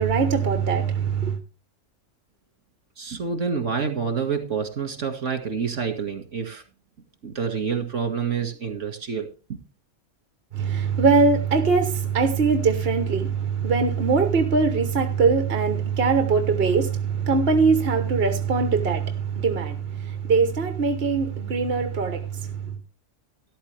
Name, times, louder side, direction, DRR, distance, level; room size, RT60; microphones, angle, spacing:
voice 1, 0.0-1.4 10.5-22.7, right 5 dB, 50° right, 1.3 m, -22 dB
voice 2, 3.0-6.6 7.2-9.6, right 6 dB, 70° right, 2.2 m, -28 dB
13.0 x 11.5 x 3.4 m
omnidirectional pair, 1.3 m